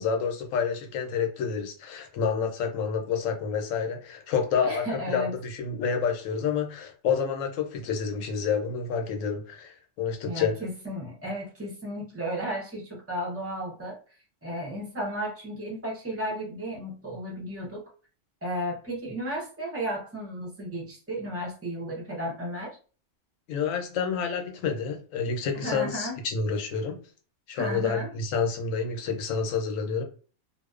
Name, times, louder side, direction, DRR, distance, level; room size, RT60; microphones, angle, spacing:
voice 1, 0.0-10.5 23.5-27.0 27.5-30.0, left 6 dB, 75° left, 1.0 m, -29 dB
voice 2, 4.6-5.3 10.2-14.0 14.4-17.9 18.4-22.8 25.5-26.2 27.6-28.1, equal, 20° right, 0.4 m, -34 dB
2.6 x 2.0 x 2.3 m
omnidirectional pair, 1.4 m